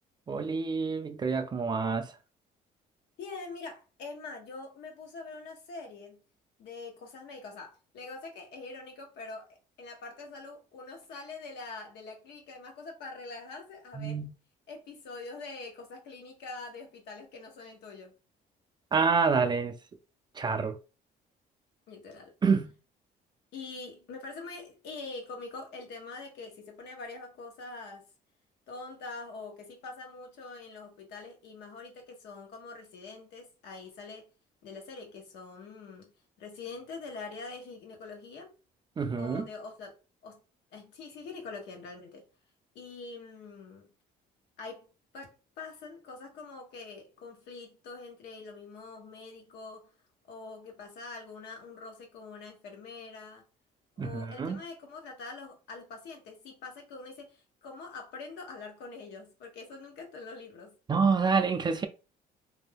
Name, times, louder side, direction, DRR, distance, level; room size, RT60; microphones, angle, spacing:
voice 1, 0.3-2.1 13.9-14.3 18.9-19.7 20.4-20.8 22.4-22.7 39.0-39.5 54.0-54.6 60.9-61.9, right 5 dB, 25° right, 0.4 m, -27 dB
voice 2, 3.2-6.2 6.6-14.2 14.7-18.1 21.9-22.3 23.5-28.0 28.7-34.3 34.6-36.1 36.4-38.5 39.2-39.9 40.2-40.4 40.7-42.3 42.7-43.9 44.6-44.9 45.1-49.9 50.3-53.4 54.0-60.8, left 3 dB, 80° left, 1.0 m, -44 dB
2.6 x 2.2 x 3.3 m
cardioid pair, 110°, 17 cm